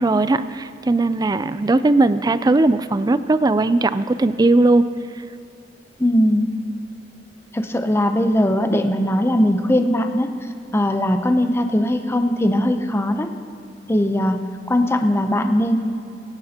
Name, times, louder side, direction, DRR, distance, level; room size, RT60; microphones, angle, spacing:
voice 1, 0.0-4.8, right 2 dB, 20° right, 13 dB, 0.4 m, -18 dB
voice 2, 6.0-6.5 7.5-10.3 10.7-13.3 13.9-14.4 14.7-15.8, left 1 dB, 15° left, 6 dB, 0.7 m, -19 dB
23.5 x 11.0 x 2.9 m, 2.5 s
head